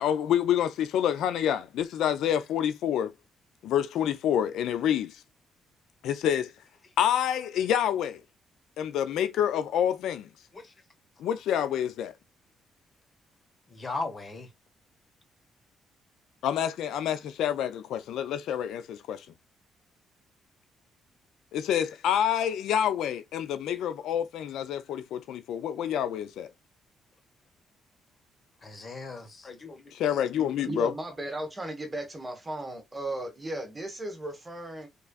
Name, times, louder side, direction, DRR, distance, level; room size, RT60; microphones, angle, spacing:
voice 1, 0.0-3.1 3.6-5.1 6.0-6.5 7.0-8.2 8.8-10.3 11.2-12.1 16.4-19.3 21.5-26.5 29.9-30.9, left 9 dB, 80° left, 0.4 m, -27 dB
voice 2, 13.7-14.5 28.6-29.9, left 3 dB, 35° left, 1.5 m, -37 dB
voice 3, 30.6-34.9, right 1 dB, 20° right, 1.5 m, -36 dB
3.7 x 3.2 x 2.4 m
cardioid pair, 90°, 0 cm